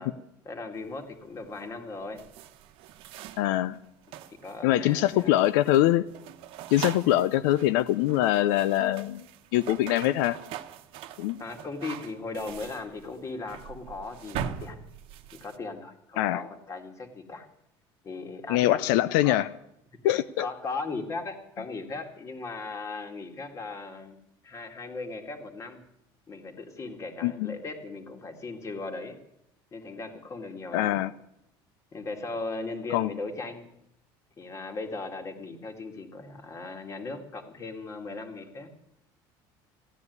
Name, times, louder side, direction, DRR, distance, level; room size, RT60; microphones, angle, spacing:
voice 1, 0.0-2.2 4.3-5.4 11.4-14.8 15.3-17.5 18.0-18.8 19.2-19.4 20.1-24.2 24.4-25.8 26.3-29.2 29.7-31.0 31.9-33.7 34.4-38.7, left 3 dB, 30° left, 5 dB, 2.2 m, -38 dB
sound 1, 0.7-15.6, right 9 dB, 65° right, 1.0 m, -42 dB
voice 2, 3.4-3.8 4.6-6.0 6.7-9.2 9.5-10.4 11.2-11.4 16.2-16.4 18.5-19.5 20.0-20.5 27.2-27.5 30.7-31.1 32.9-33.1, left 14 dB, 90° left, 14 dB, 0.5 m, -23 dB
15.0 x 9.8 x 9.4 m, 0.83 s
cardioid pair, 130°, 10 cm